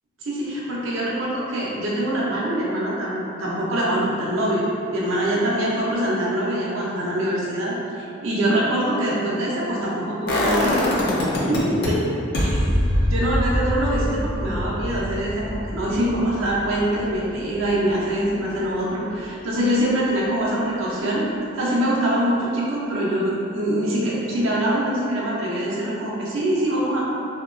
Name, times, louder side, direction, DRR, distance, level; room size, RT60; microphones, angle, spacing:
voice 1, 0.2-11.1 11.5-12.0 12.4-12.6 13.1-21.3 21.6-27.0, right 1 dB, 80° right, -6 dB, 0.6 m, -24 dB
sound 1, 10.3-11.9 12.3-18.2 18.5-18.6, left 1 dB, 55° left, 0.4 m, -24 dB
2.8 x 2.2 x 2.4 m, 2.7 s
head